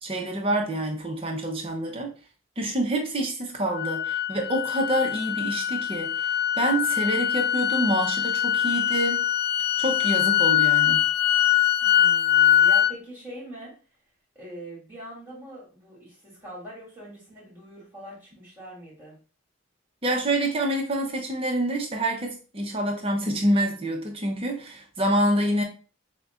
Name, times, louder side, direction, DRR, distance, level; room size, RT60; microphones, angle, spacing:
voice 1, 0.0-2.1 2.6-6.3 6.6-9.3 9.8-11.0 20.0-25.6, right 1 dB, 25° right, 0.7 m, -27 dB
sound 1, 3.8-12.9, left 11 dB, 50° left, 0.3 m, -23 dB
voice 2, 11.8-13.7 14.3-19.2, right 1 dB, 10° right, 2.1 m, -43 dB
6.4 x 2.2 x 2.4 m
head